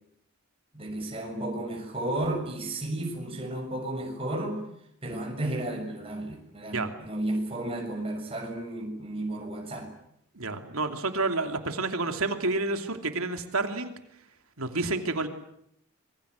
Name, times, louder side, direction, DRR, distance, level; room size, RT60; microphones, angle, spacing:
voice 1, 0.7-4.6 5.0-9.9, right 1 dB, 25° right, 2 dB, 6.7 m, -33 dB
voice 2, 10.4-13.9 14.6-15.3, right 3 dB, 75° right, 6 dB, 2.8 m, -29 dB
26.0 x 23.0 x 8.3 m, 0.73 s
head